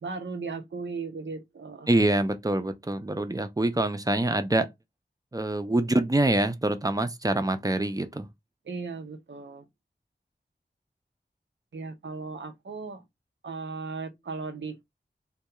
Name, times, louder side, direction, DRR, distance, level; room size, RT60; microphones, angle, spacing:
voice 1, 0.0-1.9 8.7-9.6 11.7-13.0 13.4-14.8, right 4 dB, 90° right, 0.5 m, -36 dB
voice 2, 1.9-4.7 5.3-8.3, right 2 dB, 20° right, 0.4 m, -25 dB
2.3 x 2.3 x 2.8 m
wide cardioid pair, 55°, 19 cm